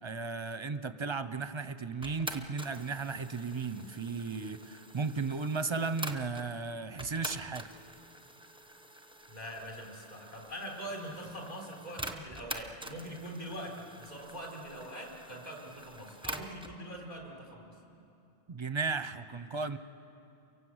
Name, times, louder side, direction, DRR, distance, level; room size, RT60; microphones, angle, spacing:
voice 1, 0.0-7.7 18.5-19.8, right 4 dB, 30° right, 11 dB, 0.7 m, -35 dB
sound 1, 2.0-6.5 7.0-16.8, right 1 dB, 5° right, 0.9 m, -46 dB
voice 2, 9.3-17.7, equal, 35° left, 0 dB, 4.4 m, -43 dB
28.5 x 24.0 x 8.0 m, 2.7 s
omnidirectional pair, 1.2 m